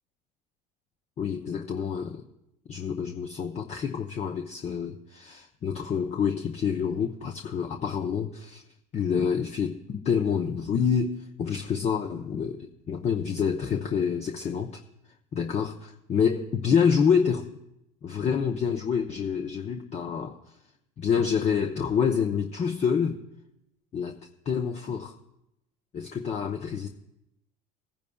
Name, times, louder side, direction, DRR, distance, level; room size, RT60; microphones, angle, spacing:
voice 1, 1.2-2.1 2.7-8.6 8.9-14.8 15.3-17.5 18.0-20.4 21.0-23.2 23.9-24.2 24.5-25.2 25.9-26.9, left 7 dB, 40° left, 4 dB, 0.9 m, -27 dB
19.5 x 10.5 x 2.4 m, 0.84 s
hypercardioid pair, 80°, 18 cm